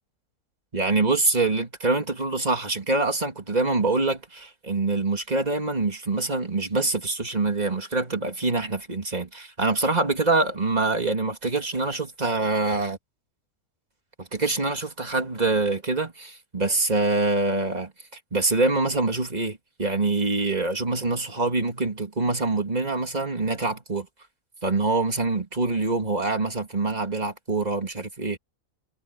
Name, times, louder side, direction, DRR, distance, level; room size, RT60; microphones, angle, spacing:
voice 1, 0.7-13.0 14.2-17.9 18.3-24.1 24.6-28.4, right 3 dB, 25° right, 2.7 m, -25 dB
omnidirectional pair, 1.6 m